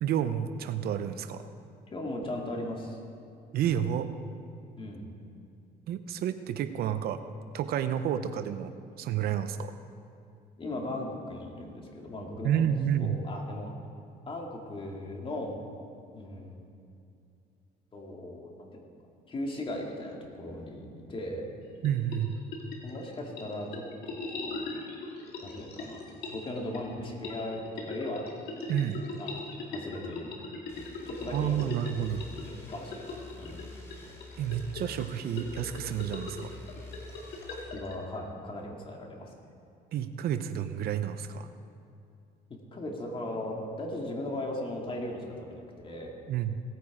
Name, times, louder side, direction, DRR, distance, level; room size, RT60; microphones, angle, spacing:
voice 1, 0.0-1.5 3.5-4.1 5.9-7.2 7.5-8.7 9.0-9.7 12.4-13.2 21.8-22.4 28.7-29.0 31.3-32.2 34.4-36.5 39.9-41.5 46.3-46.6, right 9 dB, 65° right, 11 dB, 0.7 m, -30 dB
voice 2, 1.9-3.0 4.8-5.1 10.6-12.7 13.0-13.7 14.3-15.6 16.1-16.6 17.9-18.8 19.3-21.4 22.8-24.8 25.4-26.0 26.3-28.3 29.2-30.3 30.7-31.8 32.4-33.7 37.4-39.3 42.7-46.1, left 1 dB, 30° left, 0 dB, 2.3 m, -38 dB
sound 1, 21.6-37.9, left 3 dB, 65° left, 2.2 m, -41 dB
sound 2, 30.7-37.6, left 3 dB, 15° left, 2.3 m, -47 dB
17.5 x 9.2 x 4.9 m, 2.5 s
cardioid pair, 110°, 17 cm